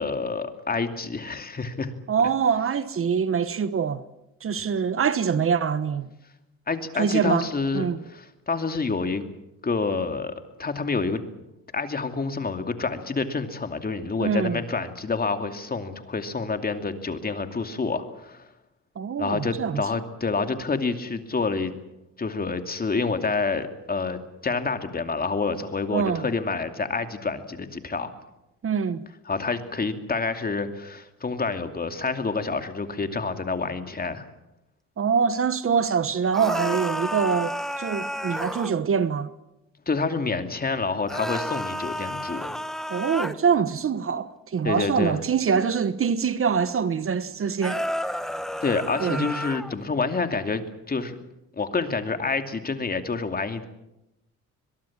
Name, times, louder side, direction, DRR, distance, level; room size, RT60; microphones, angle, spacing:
voice 1, 0.0-1.9 6.7-9.3 9.6-10.3 10.6-11.2 11.7-18.4 19.2-21.7 22.2-28.1 29.3-34.3 39.9-42.6 44.6-45.2 48.6-50.6 50.9-51.1 51.6-53.6, left 4 dB, 30° left, 2.6 m, -28 dB
voice 2, 2.1-4.1 4.4-6.1 7.0-7.5 7.7-8.0 14.2-14.6 18.9-19.8 25.9-26.3 28.6-29.0 35.0-39.3 42.9-47.8 49.0-49.3, right 6 dB, 45° right, 1.3 m, -24 dB
sound 1, 36.3-38.7 41.1-43.4 47.6-49.8, equal, ahead, 1.2 m, -31 dB
22.5 x 22.5 x 7.4 m
cardioid pair, 90°, 30 cm